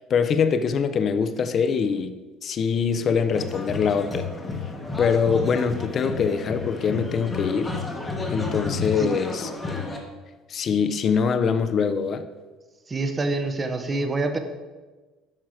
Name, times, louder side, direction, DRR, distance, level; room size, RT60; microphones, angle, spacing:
voice 1, 0.1-2.1 2.4-4.3 5.0-7.7 8.3-9.5 10.5-12.2, left 6 dB, 30° left, 10 dB, 0.5 m, -23 dB
sound 1, 3.3-10.0, left 3 dB, 10° left, 1.0 m, -32 dB
voice 2, 12.9-14.4, right 3 dB, 15° right, 7 dB, 0.7 m, -26 dB
8.8 x 6.1 x 4.8 m, 1.3 s
cardioid pair, 170°, 0 cm